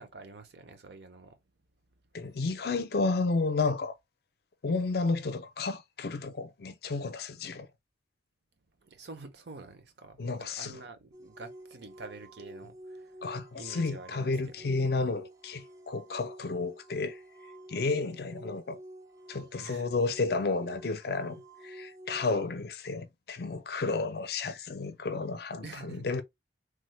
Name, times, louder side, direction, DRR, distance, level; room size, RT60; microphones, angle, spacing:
voice 1, 0.0-1.4 8.8-13.2 13.5-14.7 19.6-19.9 20.4-20.7 25.6-26.1, right 3 dB, 60° right, 0.7 m, -47 dB
voice 2, 2.1-4.0 4.6-7.7 10.2-10.7 13.2-17.2 17.7-18.8 19.3-26.2, left 3 dB, 55° left, 0.5 m, -32 dB
sound 1, 11.1-22.4, right 1 dB, 20° right, 0.4 m, -49 dB
3.2 x 2.1 x 3.2 m
head